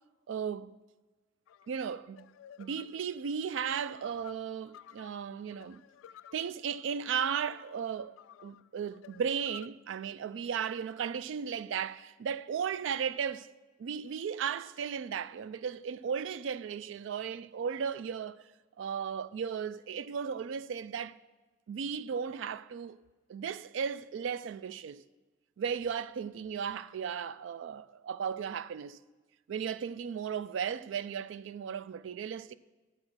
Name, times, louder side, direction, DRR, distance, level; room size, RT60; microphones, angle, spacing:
voice 1, 0.3-0.8 1.7-2.3 2.6-5.8 6.3-13.5 13.8-18.4 18.8-21.2 21.7-23.0 23.3-25.0 25.6-29.0 29.5-32.6, right 7 dB, 70° right, 0.3 m, -35 dB
sound 1, 1.5-9.7, left 9 dB, 85° left, 0.3 m, -54 dB
8.6 x 7.6 x 6.2 m
head